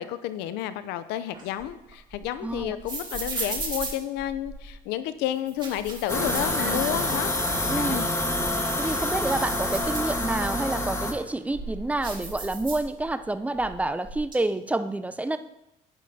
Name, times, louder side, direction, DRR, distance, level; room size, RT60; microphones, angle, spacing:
voice 1, 0.0-7.3 7.8-8.1, left 12 dB, 90° left, 13 dB, 0.6 m, -31 dB
sound 1, 1.3-4.8 5.4-7.2 7.5-7.6 8.1-10.5 11.1-13.3 13.5-14.3, right 3 dB, 30° right, 2.4 m, -37 dB
voice 2, 2.4-2.8 6.6-6.8 7.7-8.1 8.8-15.4, right 2 dB, 10° right, 11 dB, 0.5 m, -28 dB
sound 2, 6.1-11.1, left 1 dB, 15° left, 1.6 m, -27 dB
sound 3, 6.1-12.0, right 4 dB, 80° right, 1.4 m, -39 dB
11.5 x 8.6 x 2.8 m, 0.85 s
supercardioid pair, 80°, 17 cm